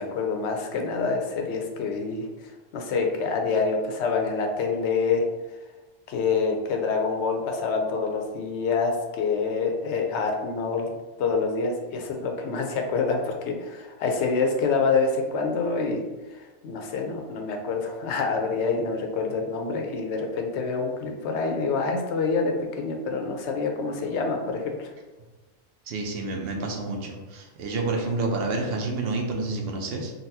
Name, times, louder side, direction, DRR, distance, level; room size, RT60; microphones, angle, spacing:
voice 1, 0.0-2.3 2.7-5.2 6.1-10.9 11.2-16.0 16.6-24.9 26.5-26.6, left 4 dB, 65° left, 3 dB, 0.8 m, -26 dB
voice 2, 25.9-30.1, right 3 dB, 60° right, 1 dB, 0.7 m, -29 dB
3.9 x 2.2 x 2.7 m, 1.2 s
omnidirectional pair, 1.3 m